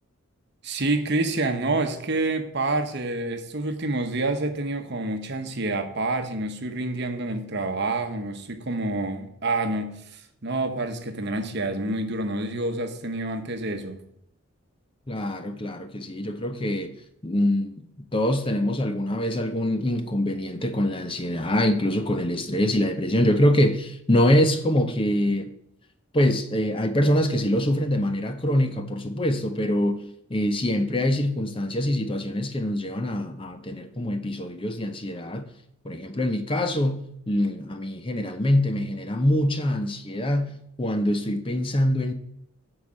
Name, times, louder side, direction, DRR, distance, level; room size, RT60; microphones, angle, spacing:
voice 1, 0.6-14.0, right 2 dB, 50° right, 1.0 m, -28 dB
voice 2, 15.1-17.0 17.2-17.9 18.1-25.5 26.1-30.0 30.3-35.5 35.8-42.1, left 1 dB, 25° left, 0.6 m, -24 dB
9.3 x 4.8 x 7.5 m
head